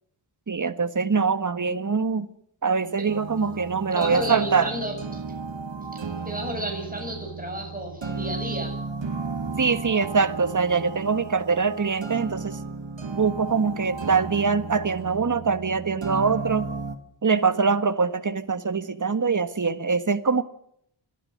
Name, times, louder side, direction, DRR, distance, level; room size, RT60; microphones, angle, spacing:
voice 1, 0.5-2.3 2.6-4.7 9.6-12.6 13.1-16.7 17.2-20.4, right 5 dB, 40° right, 1.5 m, -23 dB
sound 1, 3.1-17.0, right 4 dB, 65° right, 2.8 m, -34 dB
voice 2, 3.9-5.2 5.9-8.8, right 1 dB, 15° right, 6.9 m, -32 dB
29.5 x 13.0 x 6.6 m
wide cardioid pair, 65°, 47 cm